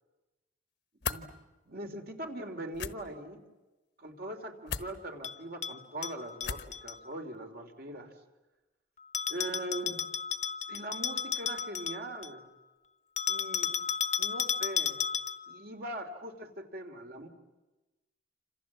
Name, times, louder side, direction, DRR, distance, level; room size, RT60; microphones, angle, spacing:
sound 1, 1.0-1.2 2.7-2.9 4.7-4.9 6.4-6.8, left 6 dB, 65° left, 1.1 m, -35 dB
voice 1, 1.7-3.4 4.0-8.1 9.3-10.0 10.7-12.4 13.3-13.7 14.2-15.0 15.5-17.3, right 1 dB, 60° right, 5 dB, 3.1 m, -41 dB
Bell, 5.2-7.0 9.1-12.4 13.2-15.6, left 7 dB, 40° left, 0.9 m, -33 dB
28.0 x 26.5 x 7.4 m, 1.1 s
head